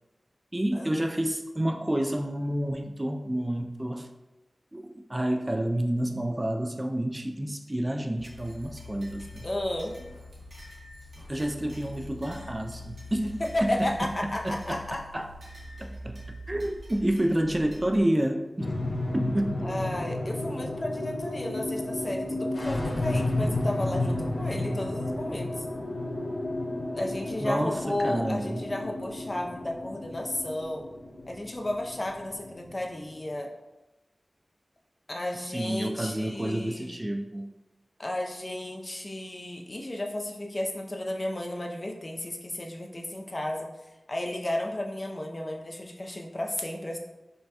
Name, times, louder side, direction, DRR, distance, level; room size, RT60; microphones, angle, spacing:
voice 1, 0.5-4.1 4.7-9.5 11.3-13.8 14.4-15.3 15.8-16.2 16.5-18.7 19.1-19.6 27.4-28.7 35.5-37.5, right 1 dB, 25° right, 3 dB, 0.4 m, -29 dB
sound 1, 8.2-18.0, left 1 dB, 75° right, 1.1 m, -44 dB
voice 2, 9.4-10.1 13.4-15.0 19.6-25.6 26.9-30.8 31.3-33.5 35.1-36.9 38.0-43.7 44.1-47.0, left 1 dB, 40° left, 1 dB, 0.5 m, -33 dB
sound 2, 18.6-33.2, left 2 dB, 80° left, 0.7 m, -32 dB
5.2 x 2.2 x 2.8 m, 1.0 s
wide cardioid pair, 60°, 0 cm